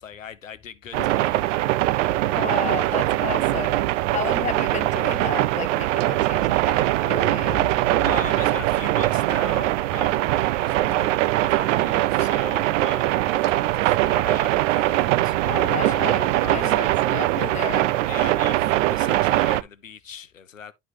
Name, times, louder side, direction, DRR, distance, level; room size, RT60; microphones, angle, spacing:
voice 1, 0.0-1.7 8.0-15.9 16.4-16.8 18.1-20.7, left 8 dB, 90° left, 0.7 m, -40 dB
sound 1, 0.9-19.6, right 16 dB, 75° right, 0.5 m, -22 dB
voice 2, 2.3-7.8 10.8-11.1 15.4-17.9, left 10 dB, 20° left, 0.4 m, -33 dB
sound 2, 7.2-10.0, left 2 dB, 65° left, 1.0 m, -40 dB
11.5 x 4.0 x 3.1 m
figure-of-eight pair, 55°, 38 cm